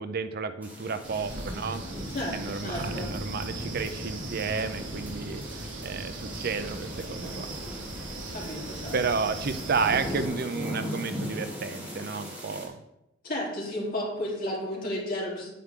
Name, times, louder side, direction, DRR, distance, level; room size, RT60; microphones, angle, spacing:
voice 1, 0.0-1.8 2.3-5.4 5.8-7.5 8.9-12.8, right 5 dB, 55° right, 11 dB, 0.6 m, -31 dB
sound 1, 0.6-12.7, equal, 10° right, 3.1 m, -40 dB
Wind, 1.0-10.3, right 1 dB, 80° right, 1.5 m, -37 dB
voice 2, 2.1-3.1 8.3-8.9 9.2-9.4 13.2-15.5, left 1 dB, 50° left, -4 dB, 3.3 m, -33 dB
9.3 x 8.6 x 3.7 m, 0.89 s
head